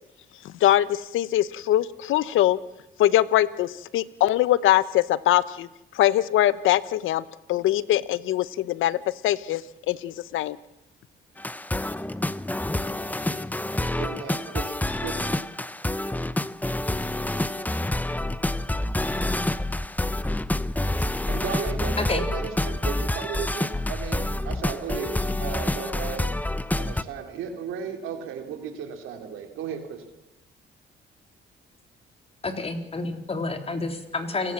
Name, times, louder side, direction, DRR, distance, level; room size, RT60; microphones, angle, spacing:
voice 1, 0.4-2.6 3.0-5.7 5.9-7.2 7.5-9.0 9.2-9.6 9.9-10.6, left 13 dB, 85° left, 17 dB, 0.9 m, -22 dB
sound 1, 11.4-27.0, left 1 dB, 10° left, 1.0 m, -28 dB
voice 2, 14.0-15.5 21.3-26.3 26.8-30.0, right 7 dB, 90° right, 4 dB, 3.0 m, -35 dB
voice 3, 20.8-21.1 22.0-22.3 32.4-34.5, left 3 dB, 30° left, 6 dB, 3.8 m, -30 dB
29.5 x 18.5 x 7.4 m, 0.91 s
cardioid pair, 90°, 20 cm